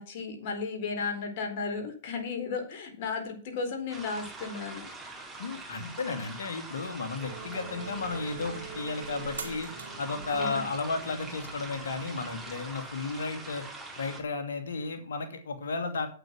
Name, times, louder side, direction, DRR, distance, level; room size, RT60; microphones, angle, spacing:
voice 1, 0.0-4.8 10.3-10.6, left 4 dB, 55° left, 5 dB, 4.1 m, -34 dB
sound 1, 3.9-14.2, right 2 dB, 5° right, 4.1 m, -43 dB
voice 2, 5.4-9.7 10.0-13.6 14.0-16.1, left 4 dB, 80° left, 7 dB, 2.6 m, -33 dB
sound 2, 7.2-12.8, right 5 dB, 85° right, 2.2 m, -43 dB
8.9 x 8.7 x 6.1 m, 0.41 s
hypercardioid pair, 125°, 0 cm